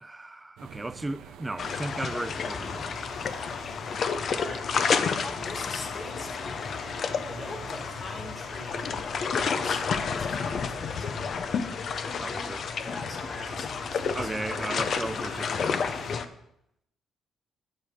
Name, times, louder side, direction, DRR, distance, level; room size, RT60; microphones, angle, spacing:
voice 1, 0.0-2.9 12.2-12.7 13.5-13.6 14.1-15.8, right 2 dB, 15° right, 0.4 m, -36 dB
sound 1, 0.6-16.2, right 9 dB, 85° right, 0.7 m, -49 dB
sound 2, 1.6-16.2, left 6 dB, 55° left, 0.8 m, -30 dB
voice 2, 5.2-6.8 7.2-11.3 12.8-14.7, left 2 dB, 35° left, 2.4 m, -42 dB
9.9 x 6.4 x 5.1 m
cardioid pair, 90°, 0 cm